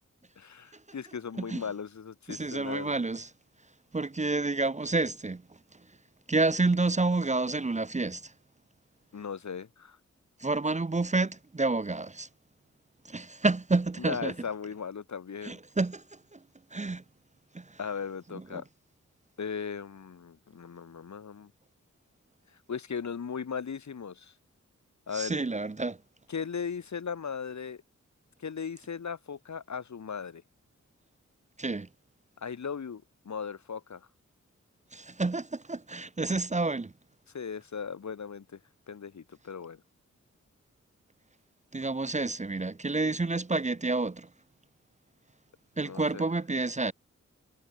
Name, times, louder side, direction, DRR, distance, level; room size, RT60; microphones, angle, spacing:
voice 1, 0.4-3.0 9.1-10.0 14.0-15.6 17.8-18.6 19.4-21.5 22.7-24.3 25.1-25.4 26.3-27.8 28.4-30.4 32.4-34.1 37.3-38.6 38.9-39.8 45.8-46.3, left 6 dB, 75° left, 2.5 m, -37 dB
voice 2, 2.3-3.3 3.9-5.4 6.3-8.3 10.4-12.3 13.1-14.3 15.4-16.0 16.3-16.4 16.7-17.0 17.5-17.8 18.3-18.6 25.1-26.0 31.6-31.9 34.9-36.9 41.7-44.3 45.8-46.9, right 3 dB, 25° right, 0.9 m, -29 dB
wide cardioid pair, 90°, 29 cm